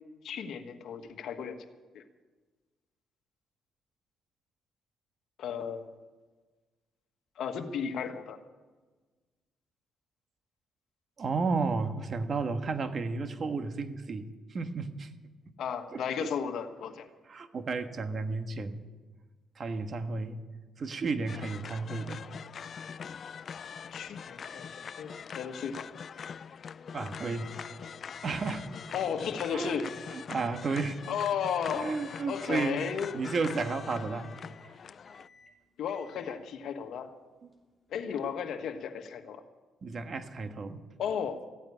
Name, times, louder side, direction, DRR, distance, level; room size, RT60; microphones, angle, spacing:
voice 1, 0.2-1.6 1.9-2.0 5.4-5.9 7.4-8.4 15.6-17.1 23.9-24.7 25.0-25.9 28.9-29.9 31.1-32.0 32.3-33.1 35.8-37.1 37.9-39.4 41.0-41.4, left 7 dB, 70° left, 6 dB, 1.4 m, -34 dB
voice 2, 11.2-15.1 15.9-16.3 17.3-18.8 19.6-20.4 20.8-22.2 26.9-27.5 28.2-28.7 29.5-29.8 30.1-31.0 31.7-32.8 33.1-34.3 39.8-40.8, right 4 dB, 45° right, 8 dB, 1.4 m, -33 dB
sound 1, 21.3-35.3, left 7 dB, 50° left, 0.4 m, -43 dB
sound 2, 27.8-38.1, left 4 dB, 5° right, 3.4 m, -58 dB
15.0 x 9.1 x 9.8 m, 1.3 s
cardioid pair, 90°, 0 cm